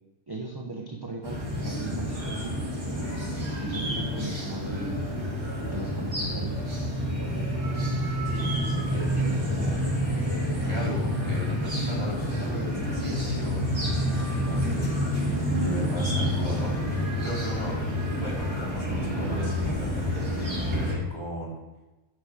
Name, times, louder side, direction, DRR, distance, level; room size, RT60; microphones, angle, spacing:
voice 1, 0.3-2.7 3.6-5.1 5.7-6.6, right 3 dB, 20° right, 1 dB, 1.0 m, -37 dB
sound 1, 1.2-20.9, equal, 55° right, 3.3 m, -28 dB
voice 2, 3.2-3.5 8.3-9.7 10.5-17.8 18.2-21.6, right 1 dB, 20° left, -6 dB, 4.2 m, -38 dB
10.0 x 6.8 x 7.7 m, 1.1 s
omnidirectional pair, 1.3 m